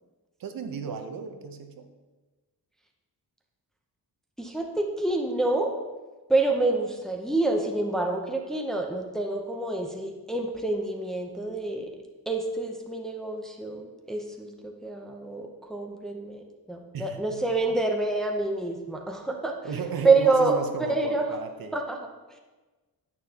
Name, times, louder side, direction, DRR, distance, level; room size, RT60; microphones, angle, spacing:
voice 1, 0.4-1.9 16.9-17.4 18.9-19.0 19.6-21.8, right 6 dB, 65° right, 6 dB, 0.8 m, -34 dB
voice 2, 4.4-5.7 6.3-11.9 12.3-19.6 20.0-20.6 20.9-21.2 21.7-22.0, right 3 dB, ahead, 1 dB, 0.6 m, -27 dB
9.8 x 9.0 x 2.8 m, 1.2 s
wide cardioid pair, 175°, 39 cm